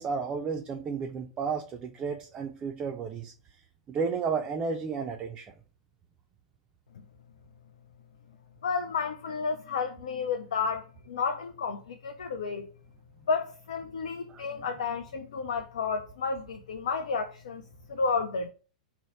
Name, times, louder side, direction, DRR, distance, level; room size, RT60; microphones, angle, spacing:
voice 1, 0.0-3.3 3.9-5.5 14.3-14.4, right 5 dB, 25° right, 0.3 m, -32 dB
voice 2, 8.6-12.7 13.3-17.6 17.9-18.5, left 5 dB, 70° left, 0.3 m, -31 dB
2.9 x 2.0 x 3.8 m
figure-of-eight pair, 100°, 4 cm